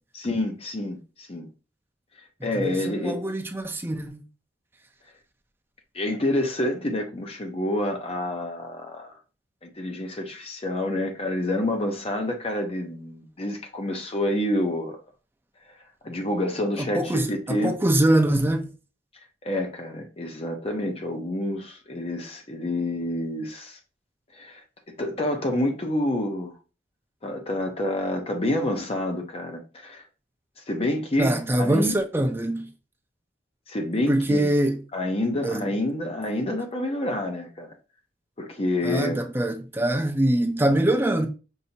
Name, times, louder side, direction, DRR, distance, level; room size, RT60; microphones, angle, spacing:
voice 1, 0.1-1.5 2.4-3.2 5.9-9.1 9.6-15.0 16.0-17.7 19.4-23.8 24.3-24.6 24.9-26.5 27.2-30.0 30.7-32.0 33.7-34.5 34.9-37.7 38.4-39.2, left 1 dB, 35° left, 0.7 m, -28 dB
voice 2, 2.5-4.3 16.8-18.7 31.2-32.7 34.1-34.8 35.4-35.7 38.8-41.3, right 1 dB, 15° right, 0.6 m, -23 dB
5.4 x 2.7 x 2.7 m
head